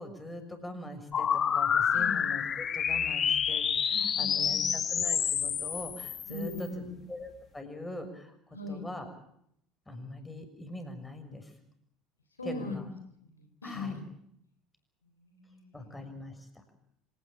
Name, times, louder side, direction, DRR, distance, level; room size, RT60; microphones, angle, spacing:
voice 1, 0.0-9.1 9.9-11.5 12.4-12.9 13.6-14.0 15.7-16.6, left 1 dB, 10° left, 6 dB, 6.5 m, -43 dB
sound 1, 1.1-6.6, left 8 dB, 35° left, 1.5 m, -28 dB
voice 2, 3.9-4.7 6.3-7.0 8.5-8.9 12.4-12.8 13.2-14.0 15.0-16.1, left 2 dB, 85° left, 5 dB, 3.8 m, -40 dB
26.0 x 18.5 x 8.3 m, 0.73 s
figure-of-eight pair, 65°, 0 cm